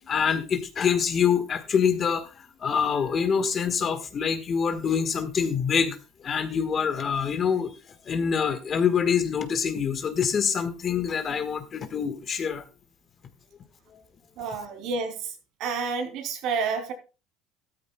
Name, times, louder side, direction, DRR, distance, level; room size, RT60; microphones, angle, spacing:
voice 1, 0.1-7.7 8.0-12.6 13.9-14.0, left 7 dB, 35° left, 1.5 m, -25 dB
voice 2, 14.4-15.2 15.6-16.9, right 5 dB, 65° right, 2.9 m, -29 dB
13.5 x 13.0 x 2.3 m
cardioid pair, 130°, 0 cm